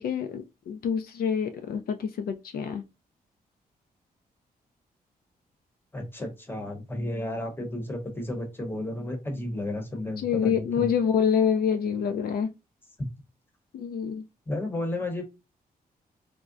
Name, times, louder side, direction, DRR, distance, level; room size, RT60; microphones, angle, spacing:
voice 1, 0.0-2.8 10.2-12.5 13.7-14.2, left 7 dB, 70° left, 0.4 m, -26 dB
voice 2, 5.9-10.9 14.5-15.2, left 1 dB, 15° left, 0.8 m, -32 dB
3.6 x 2.0 x 2.4 m
cardioid pair, 115°, 16 cm